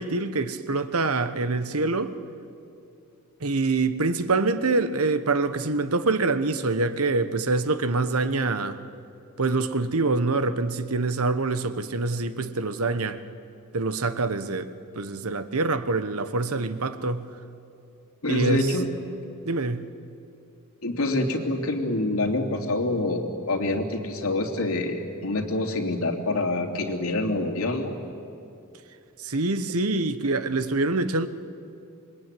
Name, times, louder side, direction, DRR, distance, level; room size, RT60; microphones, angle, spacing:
voice 1, 0.0-2.1 3.4-8.8 9.4-13.2 13.7-17.3 18.3-18.7 19.5-19.9 29.2-31.3, right 3 dB, 90° right, 1.2 m, -25 dB
voice 2, 18.2-18.9 20.8-28.0, left 2 dB, 80° left, 3.0 m, -26 dB
27.0 x 22.5 x 9.2 m
head